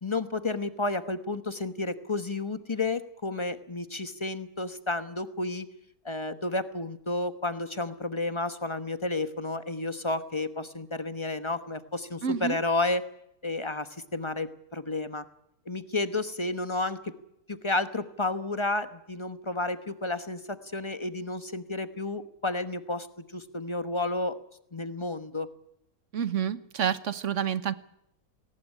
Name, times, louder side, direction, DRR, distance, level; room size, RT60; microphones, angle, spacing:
voice 1, 0.0-5.7 6.0-13.1 13.4-15.2 15.7-17.2 17.5-24.4 24.7-25.5, left 2 dB, 20° left, 10 dB, 1.0 m, -31 dB
voice 2, 12.2-12.6 26.1-27.7, right 8 dB, 55° right, 14 dB, 1.3 m, -28 dB
19.0 x 18.5 x 10.0 m, 0.77 s
omnidirectional pair, 1.7 m